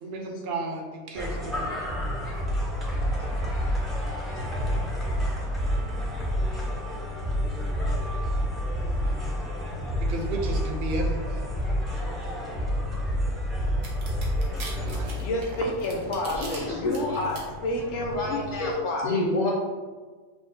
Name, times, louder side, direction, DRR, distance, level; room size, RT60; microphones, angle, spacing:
voice 1, 0.0-1.8 10.0-11.5 14.8-15.2, right 2 dB, 60° right, 2 dB, 0.8 m, -33 dB
sound 1, 1.2-18.7, equal, ahead, 0.4 m, -29 dB
voice 2, 4.2-4.8 5.4-5.6 15.2-19.1, left 1 dB, 75° left, 0 dB, 1.0 m, -31 dB
sound 2, 13.8-16.6 16.9-17.4, right 3 dB, 80° right, 1.2 m, -40 dB
voice 3, 16.3-17.2 18.2-18.7 19.0-19.5, left 2 dB, 60° left, -4 dB, 0.4 m, -28 dB
5.9 x 2.0 x 2.7 m, 1.4 s
omnidirectional pair, 1.2 m